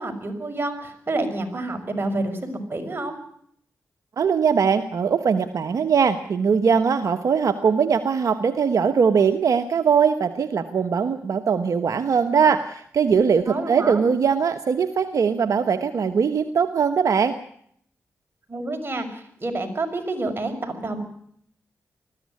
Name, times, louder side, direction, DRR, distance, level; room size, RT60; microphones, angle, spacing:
voice 1, 0.0-3.2 13.5-14.0 18.5-21.0, right 2 dB, 40° right, 4 dB, 6.2 m, -28 dB
voice 2, 4.2-17.4, right 6 dB, 70° right, 8 dB, 1.2 m, -21 dB
20.5 x 14.5 x 9.6 m, 0.66 s
cardioid pair, 55°, 6 cm